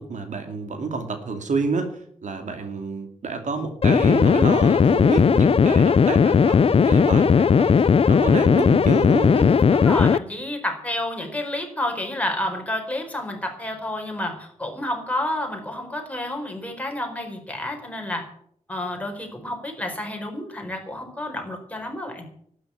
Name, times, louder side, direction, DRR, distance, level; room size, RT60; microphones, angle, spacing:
voice 1, 0.0-9.5, right 4 dB, 75° right, 6 dB, 2.6 m, -29 dB
sound 1, 3.8-10.2, left 6 dB, 50° left, 0.5 m, -17 dB
voice 2, 9.3-18.2 18.7-22.3, left 1 dB, 10° left, 2 dB, 4.5 m, -30 dB
12.5 x 10.0 x 9.7 m, 0.64 s
wide cardioid pair, 130°, 13 cm